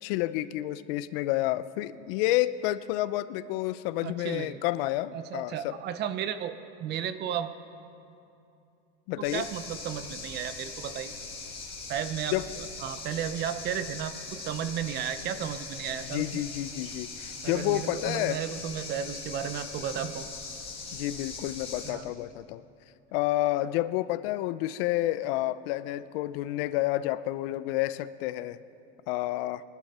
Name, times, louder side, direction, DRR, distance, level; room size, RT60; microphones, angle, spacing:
voice 1, 0.0-5.8 9.1-9.4 12.3-12.4 16.1-18.4 20.9-22.6 23.1-28.6 29.1-29.6, left 15 dB, 65° left, 15 dB, 0.6 m, -30 dB
voice 2, 4.0-4.6 5.1-7.5 9.2-11.1 11.9-16.4 17.4-20.3 21.8-22.1, right 9 dB, 30° right, 11 dB, 0.6 m, -34 dB
sound 1, 9.2-21.9, left 4 dB, 15° left, 2.4 m, -41 dB
24.0 x 12.0 x 4.3 m, 2.7 s
cardioid pair, 165°, 32 cm